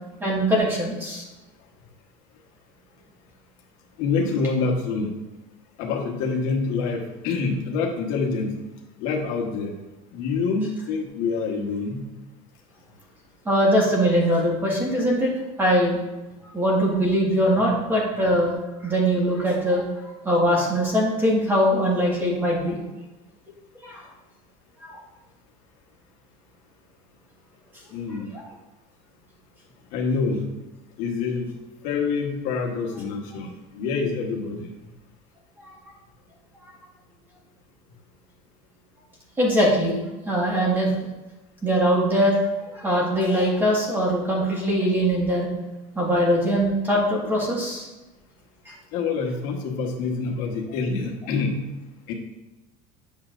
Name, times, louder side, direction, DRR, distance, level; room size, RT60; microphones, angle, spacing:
voice 1, 0.2-1.2 13.4-15.3 15.6-16.0 16.5-18.5 18.8-19.8 20.2-22.8 23.8-24.1 24.8-25.0 35.6-35.7 39.4-40.0 40.2-40.9 41.6-42.4 42.6-45.5 45.9-47.9 48.6-48.7, equal, 15° right, -3 dB, 1.6 m, -21 dB
voice 2, 4.0-5.1 5.8-8.5 9.0-9.7 10.1-12.0 27.9-28.3 29.9-30.4 31.0-31.5 31.8-33.5 33.7-34.7 48.9-51.6 52.1-52.2, left 4 dB, 60° left, 1 dB, 1.2 m, -26 dB
8.7 x 6.4 x 2.5 m, 1.1 s
cardioid pair, 155°, 16 cm